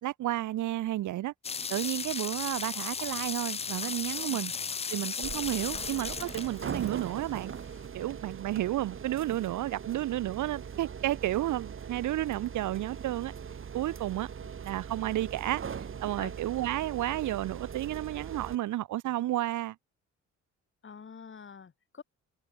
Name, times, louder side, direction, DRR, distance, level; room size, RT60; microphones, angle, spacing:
voice 1, 0.0-1.3 1.7-4.5 4.9-7.5 7.9-13.3 13.7-14.3 14.6-19.7, right 14 dB, 75° right, 1.3 m, -32 dB
sound 1, 1.4-7.3, left 5 dB, 20° left, 0.4 m, -36 dB
voice 2, 4.2-4.5 14.4-14.5 16.2-16.3 20.8-22.0, left 6 dB, 40° left, 7.1 m, -47 dB
sound 2, 5.2-18.6, right 7 dB, 45° right, 2.2 m, -41 dB
cardioid pair, 90°, 30 cm